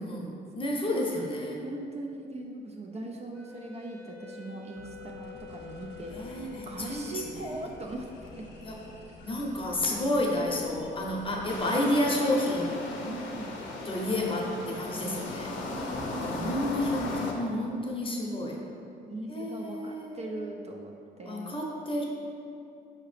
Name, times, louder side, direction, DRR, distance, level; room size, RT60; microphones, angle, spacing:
voice 1, 0.0-1.6 6.1-7.5 8.6-8.8 9.2-12.7 13.8-15.5 16.2-18.6 19.3-20.6 21.2-22.1, left 1 dB, 30° left, -2 dB, 0.8 m, -30 dB
voice 2, 1.6-8.4 13.0-13.5 15.7-17.4 19.0-21.6, right 2 dB, 35° right, 1 dB, 0.4 m, -40 dB
Wind instrument woodwind instrument, 3.3-7.9, left 7 dB, 85° right, 1.2 m, -48 dB
sound 1, 4.8-11.6, left 2 dB, 60° left, 0.9 m, -50 dB
sound 2, 11.5-17.3, left 3 dB, 80° left, 0.5 m, -36 dB
4.6 x 2.9 x 3.2 m, 2.6 s
cardioid pair, 70°, 19 cm